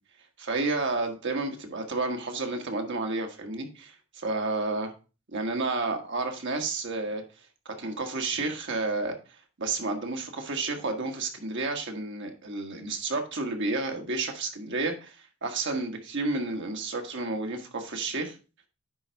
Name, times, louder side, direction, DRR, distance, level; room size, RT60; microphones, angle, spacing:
voice 1, 0.4-3.9 4.2-4.9 5.3-7.2 7.6-9.1 9.6-15.1 15.4-18.3, right 3 dB, 55° right, 4 dB, 1.4 m, -31 dB
9.8 x 4.0 x 4.4 m, 0.33 s
head